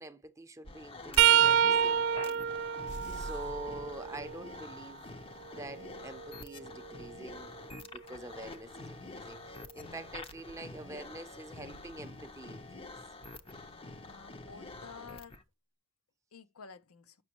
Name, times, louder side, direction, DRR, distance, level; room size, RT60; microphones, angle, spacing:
voice 1, 0.0-2.4 3.1-5.1 5.5-12.9, right 2 dB, 15° right, 0.6 m, -46 dB
sound 1, 0.6-15.4, left 3 dB, 25° left, 0.6 m, -47 dB
sound 2, 1.2-4.9 5.5-7.4 10.3-10.5 11.7-11.9 13.2-13.3, right 10 dB, 55° right, 0.3 m, -29 dB
sound 3, 2.9-4.7, equal, 55° left, 0.9 m, -46 dB
voice 2, 13.9-15.4 16.3-17.2, left 5 dB, 80° left, 0.7 m, -51 dB
7.6 x 6.1 x 2.9 m
head